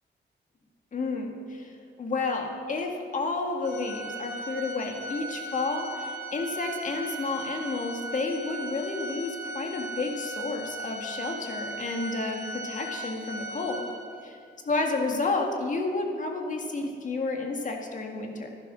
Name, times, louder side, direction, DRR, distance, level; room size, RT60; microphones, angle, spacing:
voice 1, 0.9-13.9 14.2-14.4 14.7-18.5, left 3 dB, 40° left, 2 dB, 1.9 m, -31 dB
Organ, 3.6-14.3, right 1 dB, 60° left, 3.2 m, -38 dB
15.0 x 11.5 x 6.2 m, 2.3 s
wide cardioid pair, 145°, 19 cm